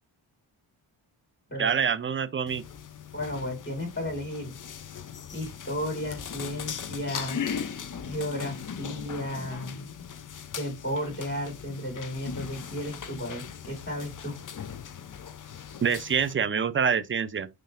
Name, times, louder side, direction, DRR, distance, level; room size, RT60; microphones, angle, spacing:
voice 1, 1.6-2.6 15.8-17.5, right 7 dB, 25° right, 0.4 m, -26 dB
sound 1, 2.5-16.3, left 7 dB, 40° left, 0.5 m, -39 dB
voice 2, 3.1-4.6 5.3-7.4 8.0-9.9 10.5-14.4, left 1 dB, 20° left, 1.7 m, -34 dB
4.0 x 3.2 x 2.5 m
cardioid pair, 40°, 49 cm